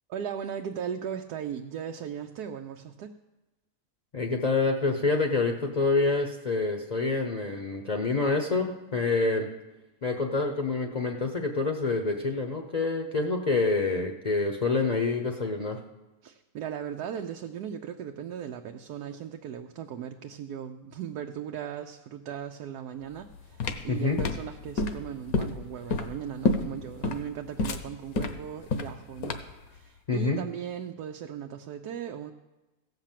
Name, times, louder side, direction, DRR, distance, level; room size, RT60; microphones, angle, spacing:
voice 1, 0.1-3.1 16.2-29.4 29.7-32.3, right 8 dB, 85° right, 4 dB, 1.2 m, -37 dB
voice 2, 4.1-9.5 10.0-15.8 23.9-24.2 30.1-30.4, left 3 dB, 35° left, 4 dB, 0.7 m, -27 dB
sound 1, 23.1-29.6, left 2 dB, 70° left, 1.3 m, -29 dB
16.0 x 5.8 x 7.4 m, 1.1 s
omnidirectional pair, 1.6 m